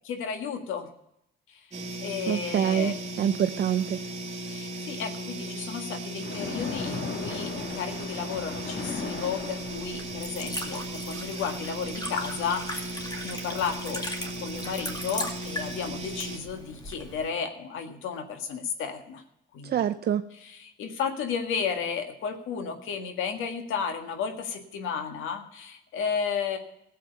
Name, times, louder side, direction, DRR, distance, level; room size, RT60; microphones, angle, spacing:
voice 1, 0.0-0.9 1.5-1.7 2.0-2.9 4.5-19.2 19.5-19.8 20.3-26.6, left 6 dB, 90° left, 6 dB, 1.7 m, -33 dB
sound 1, 1.7-16.4, right 1 dB, 35° right, 2.4 m, -37 dB
voice 2, 2.3-4.0 19.6-20.2, right 9 dB, 55° right, 10 dB, 0.6 m, -26 dB
Splash splatter, 6.2-10.2, left 4 dB, 60° left, 2.1 m, -36 dB
Liquid, 8.7-17.3, left 1 dB, 20° left, 2.2 m, -39 dB
15.0 x 7.7 x 6.9 m, 0.81 s
cardioid pair, 90°, 20 cm